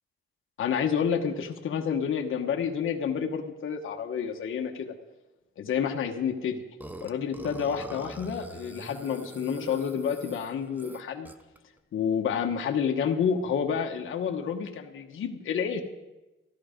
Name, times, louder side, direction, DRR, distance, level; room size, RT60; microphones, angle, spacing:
voice 1, 0.6-4.9 5.6-6.6 7.0-11.3 11.9-15.8, left 7 dB, 70° left, 3 dB, 1.2 m, -29 dB
Burping eructation, 6.8-11.6, right 1 dB, 10° right, 0.7 m, -43 dB
13.5 x 12.0 x 5.1 m, 1.1 s
cardioid pair, 110°, 21 cm